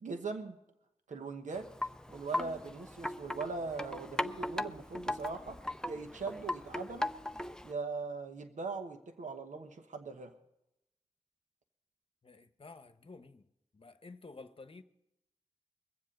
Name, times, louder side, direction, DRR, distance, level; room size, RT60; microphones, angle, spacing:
voice 1, 0.0-0.6 1.1-1.7 2.1-5.6 5.8-7.1 7.6-10.3, right 4 dB, 70° right, 1.1 m, -40 dB
Wind chime, 1.5-7.7, left 1 dB, 5° left, 0.6 m, -38 dB
voice 2, 12.2-13.4 13.7-14.8, left 3 dB, 45° left, 1.0 m, -52 dB
22.0 x 7.6 x 5.3 m
cardioid pair, 45°, 13 cm